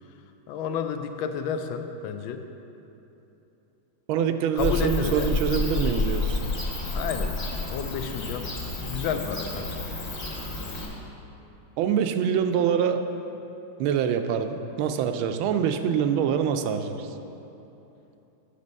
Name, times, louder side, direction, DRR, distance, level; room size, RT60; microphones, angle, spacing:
voice 1, 0.5-2.4 4.6-5.3 6.9-7.4 7.7-8.5 8.8-9.9, left 7 dB, 80° left, 7 dB, 1.4 m, -31 dB
voice 2, 4.1-6.4 11.8-13.0 13.8-17.1, right 8 dB, 90° right, 8 dB, 1.4 m, -25 dB
Bird / Cricket, 4.6-10.9, left 2 dB, 40° left, 1.2 m, -30 dB
8.5 x 6.8 x 5.2 m, 3.0 s
omnidirectional pair, 2.2 m